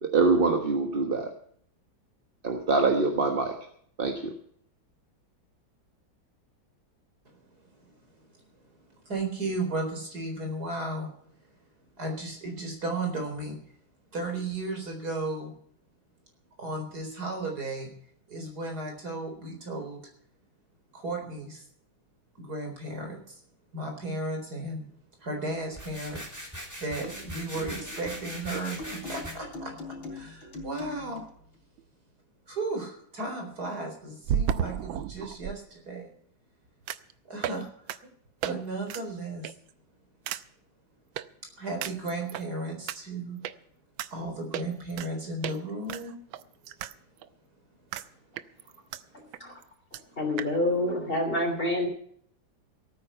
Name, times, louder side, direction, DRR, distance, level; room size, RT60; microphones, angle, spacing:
voice 1, 0.0-1.3 2.4-3.5 4.0-4.3, right 3 dB, 30° right, 4 dB, 1.3 m, -24 dB
voice 2, 7.2-8.3 8.6-11.1 12.0-13.6 14.1-15.5 16.6-17.9 18.3-20.0 20.9-21.6 22.3-23.4 23.7-24.8 25.2-26.3 26.8-31.2 32.5-36.1 37.2-37.7 38.4-39.5 41.4-43.4 44.1-46.2, right 2 dB, 50° right, 3 dB, 4.6 m, -35 dB
sound 1, 25.7-29.3, equal, 10° right, 3.0 m, -41 dB
sound 2, 27.0-31.3, left 2 dB, 75° left, 4.5 m, -42 dB
sound 3, 31.8-31.9 34.2-35.6 36.9-37.1 37.4-37.6 37.9-38.0 38.4-38.5 38.9-39.0 39.4-39.7 40.3-40.4 41.2-41.3 41.8-42.4 42.9-43.0 43.4-43.5 44.0-44.1 44.5-45.1 45.4-45.6 45.9-46.9 47.2-47.3 47.9-48.1 48.4-49.0 49.3-49.4 49.6-49.7 49.9-50.0 50.4-50.5, right 9 dB, 85° right, 1.5 m, -32 dB
voice 3, 50.2-51.9, left 1 dB, 25° left, 3 dB, 3.4 m, -27 dB
17.5 x 9.5 x 5.7 m, 0.63 s
omnidirectional pair, 2.2 m